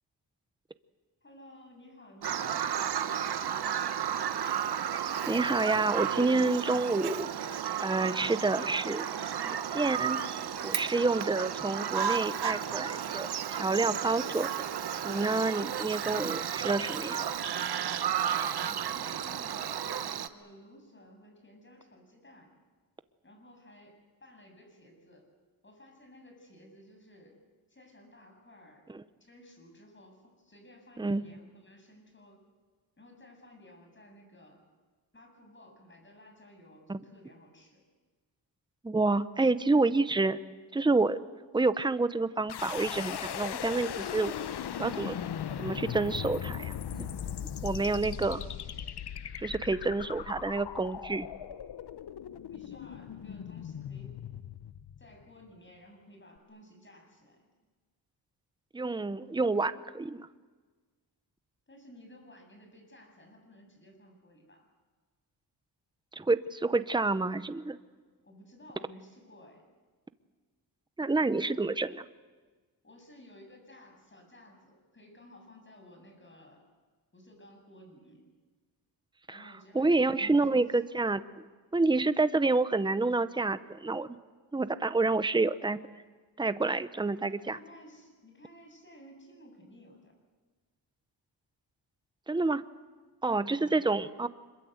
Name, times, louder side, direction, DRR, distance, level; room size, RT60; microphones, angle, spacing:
voice 1, 1.2-3.6 18.6-22.5 23.2-25.2 25.6-27.4 27.7-28.9 29.2-32.4 33.0-34.6 35.1-37.8 52.5-54.2 55.0-57.4 61.7-64.7 68.2-69.6 72.8-76.6 77.1-78.2 79.3-80.6 86.9-90.1 93.6-93.9, left 1 dB, 25° left, 3 dB, 7.7 m, -55 dB
Bird vocalization bird call bird song, 2.2-20.3, right 9 dB, 60° right, 1.2 m, -33 dB
voice 2, 5.3-9.1 9.4-10.2 10.6-14.5 15.0-17.3 28.9-29.0 31.0-31.2 36.9-37.0 38.8-40.4 40.7-41.2 41.5-44.3 44.8-45.2 45.6-47.1 47.6-48.4 49.4-51.3 58.7-60.3 66.1-67.8 71.0-72.0 79.3-81.2 81.7-84.1 84.5-85.8 86.4-87.6 92.3-92.6 93.2-94.3, right 3 dB, 10° right, 13 dB, 0.9 m, -28 dB
sound 1, 42.5-55.4, left 9 dB, 65° left, 1.0 m, -38 dB
25.5 x 22.5 x 8.1 m, 1.4 s
cardioid pair, 90°, 43 cm